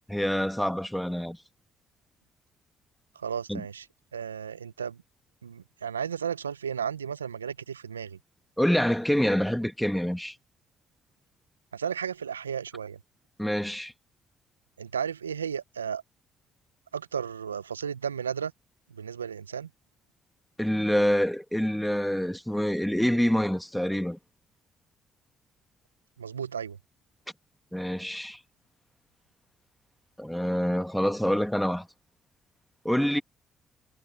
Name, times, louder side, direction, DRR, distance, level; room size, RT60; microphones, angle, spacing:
voice 1, 0.1-1.4 3.5-3.6 8.6-10.3 13.4-13.9 20.6-24.2 27.7-28.4 30.2-31.9 32.8-33.2, equal, 5° left, 2.3 m, -26 dB
voice 2, 3.1-3.9 4.1-5.0 5.4-8.2 11.7-13.0 14.8-16.0 16.9-18.5 18.9-19.7 26.2-26.8, right 7 dB, 90° right, 0.8 m, -34 dB
figure-of-eight pair, 45°, 0 cm